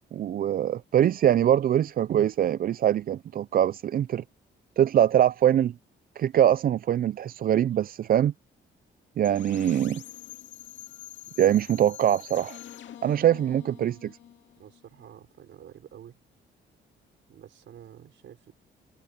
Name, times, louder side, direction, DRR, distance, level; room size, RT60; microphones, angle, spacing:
voice 1, 0.1-4.2 4.8-5.7 6.2-8.3 9.2-10.0 11.4-12.6 13.0-14.2, right 10 dB, 50° right, 0.4 m, -23 dB
sound 1, 9.2-15.0, left 12 dB, 70° left, 2.2 m, -45 dB
voice 2, 14.6-16.2 17.3-18.5, right 10 dB, 65° right, 5.4 m, -49 dB
cardioid pair, 90°, 20 cm